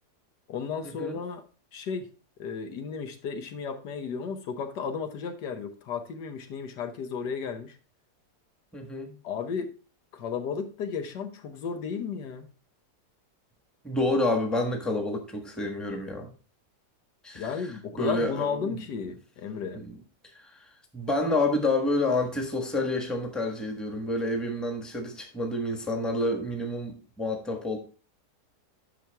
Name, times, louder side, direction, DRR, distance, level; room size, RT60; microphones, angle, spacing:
voice 1, 0.5-1.4 1.7-2.1 2.4-7.8 9.2-9.7 10.1-12.5 17.3-19.8, left 6 dB, 80° left, 1.6 m, -34 dB
voice 2, 8.7-9.1 13.8-16.3 17.2-17.5 18.0-18.8 19.7-19.9 20.4-20.5 20.9-27.8, left 2 dB, ahead, 1.1 m, -29 dB
9.0 x 6.0 x 3.4 m
omnidirectional pair, 1.8 m